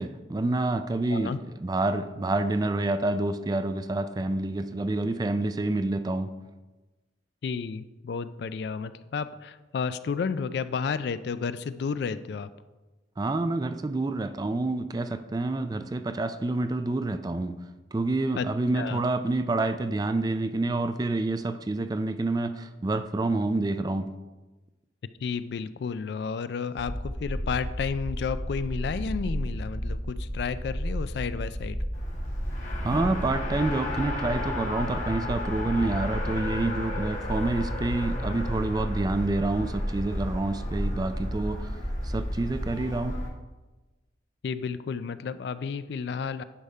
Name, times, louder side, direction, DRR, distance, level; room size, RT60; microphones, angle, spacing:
voice 1, 0.0-1.3 1.6-6.3 13.2-17.5 17.9-24.1 32.8-41.7 42.0-43.1, right 2 dB, 20° right, 10 dB, 0.3 m, -28 dB
voice 2, 7.4-12.5 18.3-18.5 18.7-19.0 25.2-31.8 44.4-46.4, left 5 dB, 60° left, 13 dB, 0.3 m, -32 dB
sound 1, 26.8-43.3, equal, 5° left, 0.7 m, -33 dB
Race car auto racing, 31.9-43.3, left 2 dB, 40° left, 1.1 m, -36 dB
9.9 x 3.5 x 5.4 m, 1.2 s
head